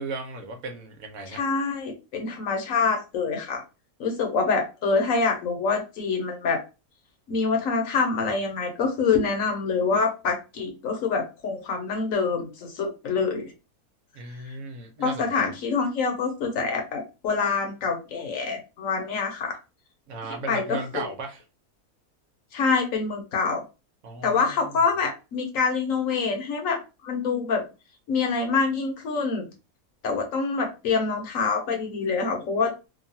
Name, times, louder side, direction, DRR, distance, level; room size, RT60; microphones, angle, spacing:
voice 1, 0.0-1.4 14.1-15.5 20.1-21.4 24.0-24.7, right 3 dB, 70° right, 1.0 m, -36 dB
voice 2, 1.3-3.6 4.0-6.6 7.3-13.5 14.4-14.5 15.0-19.6 20.3-21.0 22.5-23.6 24.2-27.6 28.1-29.5 30.0-32.7, left 4 dB, 60° left, 1.1 m, -26 dB
3.0 x 2.2 x 2.7 m
omnidirectional pair, 1.7 m